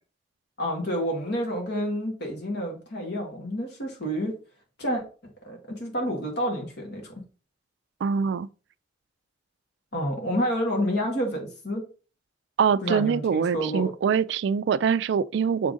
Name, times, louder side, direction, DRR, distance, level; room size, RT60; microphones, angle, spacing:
voice 1, 0.6-4.4 4.8-5.0 5.4-7.1 9.9-11.9 12.8-13.9, equal, 60° left, 2.0 m, -29 dB
voice 2, 8.0-8.5 12.6-15.7, right 6 dB, 65° right, 0.3 m, -24 dB
6.9 x 3.7 x 3.9 m
head